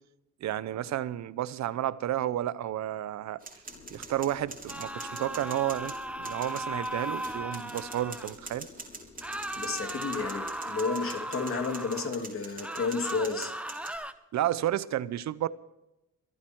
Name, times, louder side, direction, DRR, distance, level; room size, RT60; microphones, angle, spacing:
voice 1, 0.4-3.4 3.9-8.7 14.3-15.5, right 12 dB, 65° right, 0.7 m, -31 dB
sound 1, 3.4-14.0, right 3 dB, 30° right, 3.7 m, -45 dB
sound 2, 3.7-10.5, left 4 dB, 65° left, 5.4 m, -52 dB
sound 3, 4.7-8.3 9.2-12.1 12.6-14.1, right 1 dB, 5° right, 0.9 m, -37 dB
voice 2, 9.6-13.5, left 4 dB, 45° left, 2.6 m, -31 dB
25.5 x 8.9 x 4.6 m
cardioid pair, 90°, 30 cm